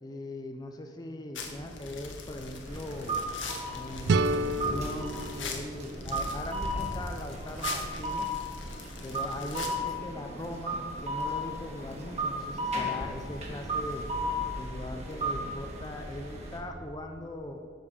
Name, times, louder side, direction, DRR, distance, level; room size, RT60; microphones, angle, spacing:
voice 1, 0.0-3.2 3.7-8.3 9.0-14.1 14.6-17.6, left 1 dB, 20° left, 4 dB, 0.7 m, -40 dB
sound 1, 1.3-10.0, left 4 dB, 70° left, 1.5 m, -41 dB
sound 2, 2.7-16.6, equal, 35° right, 1.9 m, -35 dB
sound 3, 4.1-7.0, right 2 dB, 60° right, 0.4 m, -31 dB
13.0 x 5.3 x 7.0 m, 2.4 s
head